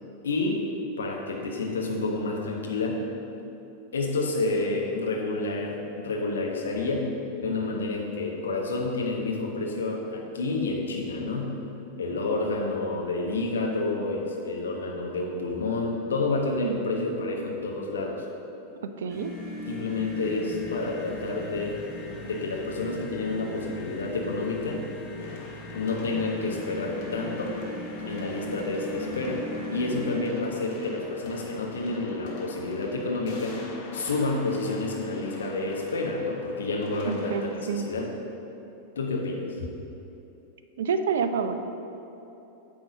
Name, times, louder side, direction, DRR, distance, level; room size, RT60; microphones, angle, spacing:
voice 1, 0.2-0.6 1.0-3.0 3.9-7.1 7.4-11.5 12.0-18.2 19.7-21.8 22.2-24.8 25.7-27.5 28.0-33.6 33.9-38.1 38.9-39.4, left 3 dB, 65° left, 0 dB, 1.1 m, -29 dB
voice 2, 19.0-19.3 37.1-37.8 40.8-41.6, right 6 dB, 60° right, 9 dB, 0.4 m, -28 dB
sound 1, 19.1-30.2, left 1 dB, 20° left, 1.3 m, -39 dB
sound 2, 25.2-37.5, left 2 dB, 45° left, 1.5 m, -44 dB
9.3 x 3.7 x 6.4 m, 3.0 s
figure-of-eight pair, 90°, 0 cm